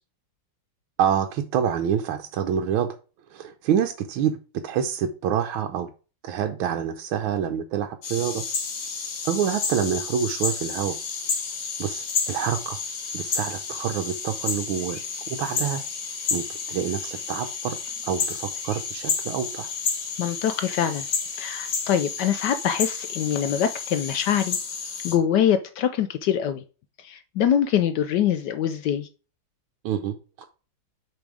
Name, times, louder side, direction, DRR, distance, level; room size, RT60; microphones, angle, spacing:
voice 1, 1.0-2.9 3.3-4.4 4.6-5.9 6.2-8.4 9.2-10.9 11.8-12.8 13.1-15.0 15.3-15.8 16.3-17.8 18.1-19.7 29.8-30.4, right 8 dB, 75° right, 1.4 m, -27 dB
sound 1, 8.0-25.2, left 5 dB, 50° left, 2.0 m, -31 dB
voice 2, 20.2-21.1 21.4-24.6 25.0-26.6 27.0-29.1, left 9 dB, 75° left, 0.9 m, -24 dB
6.9 x 4.1 x 4.8 m
omnidirectional pair, 2.3 m